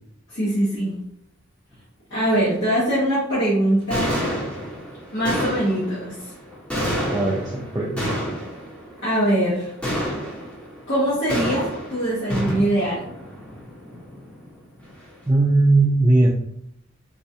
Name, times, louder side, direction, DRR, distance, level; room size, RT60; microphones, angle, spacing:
voice 1, 0.3-0.9 2.1-4.2 5.1-6.1 9.0-9.7 10.9-13.0, right 1 dB, 65° left, -10 dB, 1.2 m, -22 dB
sound 1, 1.7-1.8 2.2-2.6 3.6-3.7 3.9-15.3, equal, 5° left, 0.8 m, -29 dB
voice 2, 7.1-8.2 15.3-16.3, right 2 dB, 20° right, -4 dB, 0.4 m, -19 dB
4.0 x 2.3 x 2.7 m, 0.73 s
head